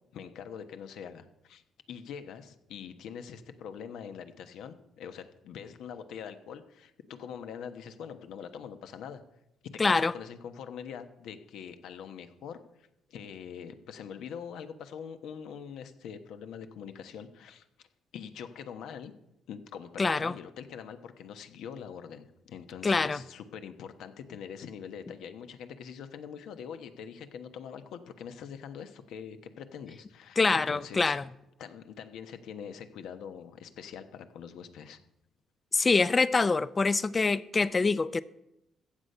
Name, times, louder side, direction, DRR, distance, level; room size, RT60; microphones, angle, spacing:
voice 1, 0.1-1.6 1.9-9.2 9.6-17.6 18.1-19.1 19.5-31.2 31.6-35.0, left 7 dB, 80° left, 1.1 m, -43 dB
voice 2, 9.8-10.1 20.0-20.3 22.8-23.2 30.4-31.2 35.7-38.2, left 4 dB, 30° left, 0.5 m, -25 dB
15.0 x 8.0 x 5.5 m
cardioid pair, 90°, 0 cm